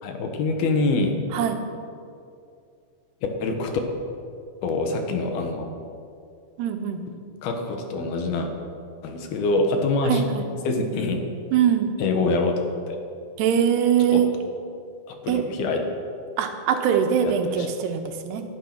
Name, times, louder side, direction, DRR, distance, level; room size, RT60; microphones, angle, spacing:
voice 1, 0.0-1.2 3.4-3.8 4.6-5.7 7.4-8.5 9.0-10.2 10.6-11.3 12.0-12.6 12.9-13.0 14.1-14.3 15.1-15.8 17.2-17.7, left 3 dB, 70° left, 4 dB, 3.3 m, -25 dB
voice 2, 6.6-7.0 10.1-10.5 11.5-11.9 13.4-14.3 15.3-15.4 16.4-18.4, right 8 dB, 85° right, 5 dB, 3.3 m, -22 dB
19.0 x 11.5 x 6.1 m, 2.4 s
omnidirectional pair, 4.7 m